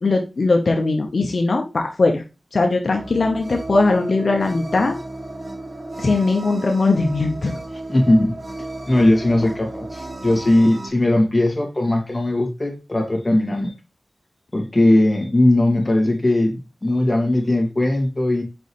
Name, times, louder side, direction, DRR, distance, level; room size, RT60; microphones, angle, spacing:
voice 1, 0.0-2.2 2.5-5.0 6.0-7.6, left 3 dB, 65° left, 2 dB, 1.0 m, -19 dB
sound 1, 2.9-10.9, right 2 dB, 50° right, 2.5 m, -34 dB
voice 2, 7.9-8.3 8.9-13.7 14.5-18.4, left 1 dB, 25° left, 2 dB, 2.3 m, -18 dB
6.4 x 5.3 x 3.1 m, 0.28 s
wide cardioid pair, 80°, 0 cm